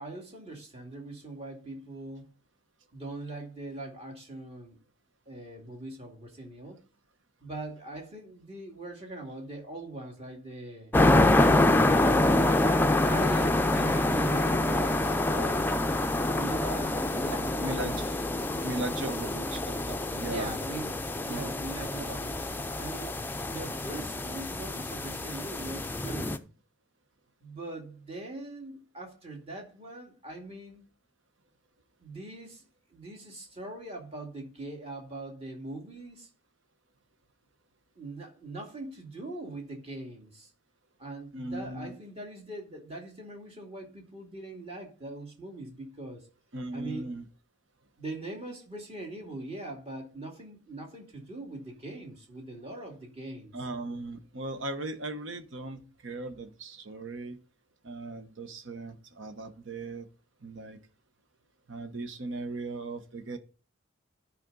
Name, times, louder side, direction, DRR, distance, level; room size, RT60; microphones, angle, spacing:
voice 1, 0.0-2.3 2.9-4.8 5.3-6.8 7.4-10.9 13.0-15.8 16.3-18.2 20.2-22.5 22.8-23.1 23.5-26.5 27.4-30.8 32.0-32.6 32.9-36.3 38.0-40.5 41.0-46.3 46.7-47.1 48.0-53.7, right 2 dB, 30° right, 2.2 m, -41 dB
sound 1, 10.9-26.4, left 2 dB, 10° left, 0.4 m, -26 dB
voice 2, 17.6-18.0 18.6-20.6 21.3-21.5 41.3-41.9 46.5-47.2 53.5-57.4 57.8-60.1 60.4-60.8 61.7-63.4, right 2 dB, 75° right, 1.1 m, -37 dB
12.0 x 5.2 x 3.9 m
head